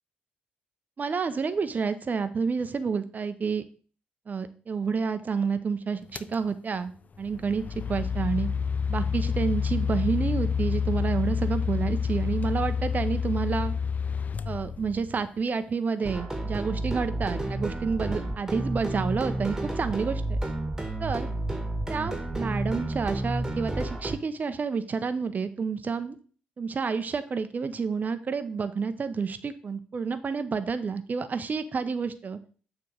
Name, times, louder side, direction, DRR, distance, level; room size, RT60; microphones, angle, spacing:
voice 1, 1.0-3.6 4.3-8.5 8.9-13.7 14.5-20.4 21.0-21.3 21.9-26.2 26.6-32.4, right 5 dB, 35° right, 11 dB, 0.7 m, -29 dB
sound 1, 6.1-6.3 7.3-15.3, left 6 dB, 35° left, 0.4 m, -28 dB
sound 2, 16.0-24.2, right 1 dB, 10° right, 1.7 m, -31 dB
7.0 x 3.7 x 6.1 m, 0.40 s
figure-of-eight pair, 45°, 5 cm